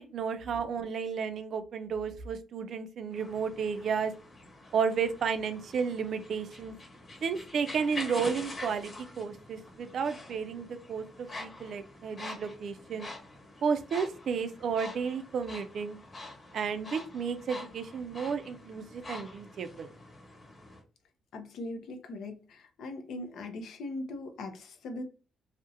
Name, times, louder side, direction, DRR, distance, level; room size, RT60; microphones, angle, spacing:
voice 1, 0.0-4.1 4.7-6.7 7.2-13.1 13.6-16.0 16.5-19.9, right 6 dB, 60° right, 10 dB, 0.3 m, -32 dB
sound 1, 3.1-20.8, left 2 dB, 35° left, 1.1 m, -46 dB
voice 2, 21.3-25.0, left 2 dB, 75° left, 5 dB, 0.5 m, -40 dB
2.4 x 2.0 x 2.6 m, 0.35 s
cardioid pair, 90°, 0 cm